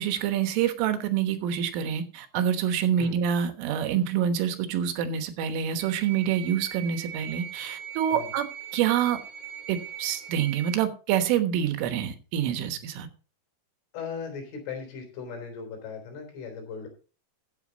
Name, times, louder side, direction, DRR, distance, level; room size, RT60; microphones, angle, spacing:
voice 1, 0.0-8.5 8.7-9.2 9.7-13.1, right 9 dB, 80° right, 8 dB, 3.8 m, -26 dB
sound 1, 5.8-10.8, right 9 dB, 25° right, 2.6 m, -40 dB
voice 2, 13.9-16.9, left 5 dB, 75° left, 4 dB, 6.2 m, -38 dB
14.5 x 8.4 x 4.0 m, 0.36 s
omnidirectional pair, 5.7 m